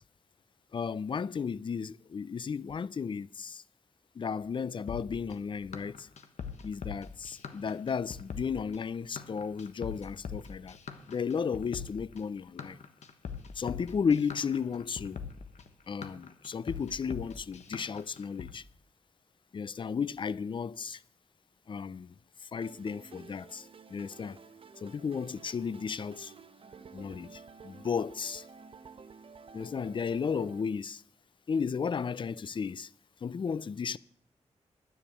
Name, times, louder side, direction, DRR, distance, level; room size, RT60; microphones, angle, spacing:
voice 1, 0.7-3.6 4.2-6.1 6.6-10.8 11.1-12.8 13.6-15.2 15.9-18.6 19.5-21.0 21.7-22.1 22.4-24.4 24.8-26.3 26.9-28.5 29.5-31.0 31.5-32.9 33.2-34.0, left 6 dB, 45° left, 0.4 m, -34 dB
sound 1, 4.9-18.5, left 6 dB, 75° left, 1.1 m, -42 dB
sound 2, 22.6-30.6, right 5 dB, 50° right, 0.6 m, -52 dB
9.9 x 7.2 x 8.2 m
cardioid pair, 70°, 12 cm